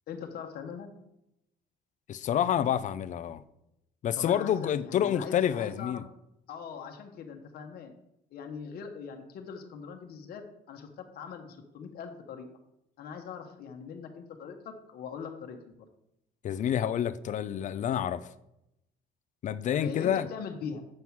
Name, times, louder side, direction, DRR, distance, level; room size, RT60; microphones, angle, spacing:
voice 1, 0.1-0.9 4.2-6.0 6.5-7.9 8.3-10.4 10.7-12.6 13.0-15.7 19.7-20.8, left 6 dB, 65° left, 1.2 m, -41 dB
voice 2, 2.1-3.4 4.0-6.0 16.4-18.3 19.4-20.3, left 9 dB, 45° left, 0.5 m, -28 dB
7.7 x 5.5 x 4.7 m
cardioid pair, 110°, 17 cm